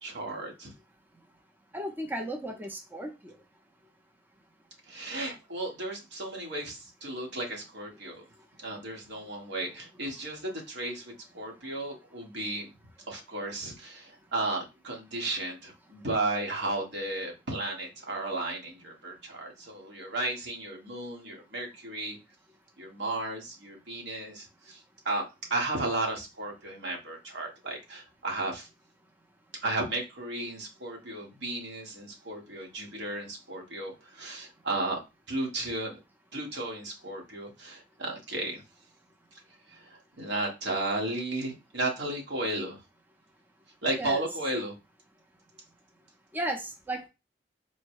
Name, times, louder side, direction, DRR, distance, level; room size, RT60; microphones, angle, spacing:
voice 1, 0.0-0.7 4.9-8.2 8.6-12.7 13.1-22.2 22.8-25.2 25.5-28.7 29.6-35.0 35.3-36.0 36.3-38.6 39.7-42.8 43.8-44.7, right 2 dB, 80° right, 0 dB, 1.5 m, -34 dB
voice 2, 1.7-3.3 44.0-44.2 46.3-47.1, right 1 dB, 10° right, 3 dB, 0.6 m, -35 dB
4.2 x 2.1 x 4.6 m, 0.26 s
head